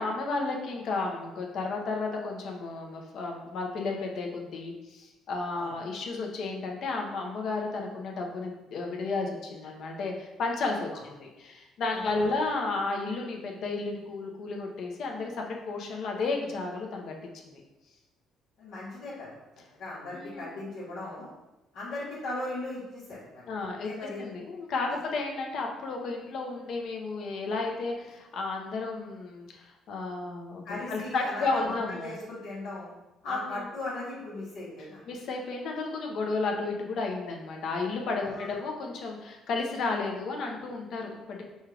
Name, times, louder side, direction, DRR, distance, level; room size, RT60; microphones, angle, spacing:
voice 1, 0.0-17.1 17.5-17.6 20.1-20.6 23.5-32.2 33.2-33.6 35.1-41.4, left 3 dB, 65° left, 1 dB, 0.8 m, -33 dB
voice 2, 11.9-12.2 18.6-19.3 19.8-21.3 21.7-23.5 23.8-24.2 30.6-32.9 33.2-35.0 38.3-38.6, left 2 dB, 85° left, -12 dB, 1.3 m, -37 dB
5.3 x 2.4 x 3.2 m, 1.0 s
cardioid pair, 90°, 0 cm